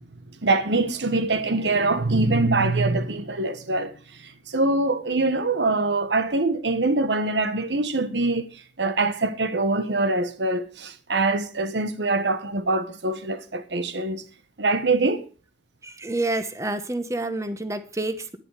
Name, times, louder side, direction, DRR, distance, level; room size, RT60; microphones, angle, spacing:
voice 1, 0.4-3.9 4.5-8.5 8.8-14.2 14.6-15.3, right 2 dB, 85° right, 1.3 m, -23 dB
voice 2, 15.8-18.4, right 2 dB, 15° right, 1.1 m, -28 dB
11.0 x 10.5 x 5.0 m
head